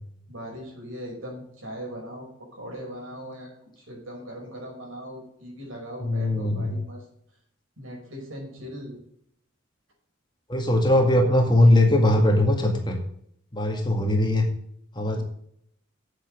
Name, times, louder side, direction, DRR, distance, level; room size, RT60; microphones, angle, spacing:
voice 1, 0.3-2.3 2.5-7.0 7.8-9.0 15.1-15.2, equal, 90° right, -1 dB, 5.5 m, -39 dB
voice 2, 6.0-6.8 10.5-13.0 13.5-14.5 15.0-15.2, left 1 dB, 25° left, 3 dB, 1.9 m, -20 dB
8.4 x 8.1 x 6.5 m, 0.71 s
head